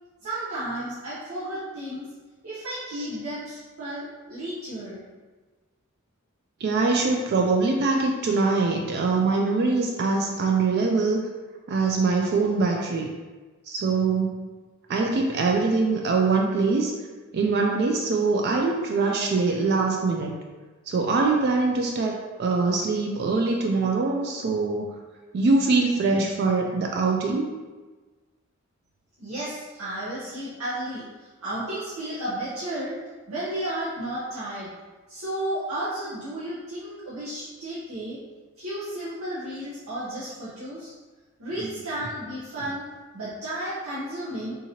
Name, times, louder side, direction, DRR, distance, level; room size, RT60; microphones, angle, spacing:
voice 1, 0.2-2.1 2.4-5.0 29.2-33.0 33.3-34.7 35.1-38.2 38.6-40.9 41.4-42.8 43.1-44.6, right 1 dB, 85° right, -11 dB, 0.8 m, -33 dB
voice 2, 6.6-11.2 11.7-13.1 13.7-14.5 14.9-16.9 17.3-20.4 20.9-25.0 25.3-27.5, right 3 dB, 50° right, 1 dB, 0.3 m, -23 dB
3.7 x 2.9 x 2.8 m, 1.3 s
head